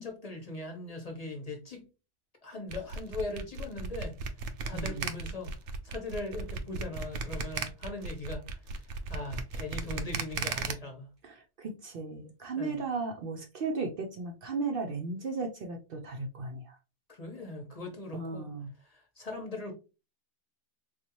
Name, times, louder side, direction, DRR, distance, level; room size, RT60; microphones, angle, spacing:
voice 1, 0.0-1.9 2.4-4.2 4.6-5.5 5.8-11.1 12.6-12.8 17.1-18.5 18.8-19.7, left 2 dB, 40° left, 0.8 m, -40 dB
sound 1, 2.7-10.7, right 5 dB, 85° right, 0.9 m, -36 dB
voice 2, 4.7-5.1 11.2-16.8 18.1-18.7, right 4 dB, 60° right, 0.7 m, -36 dB
3.9 x 2.4 x 2.9 m
omnidirectional pair, 1.2 m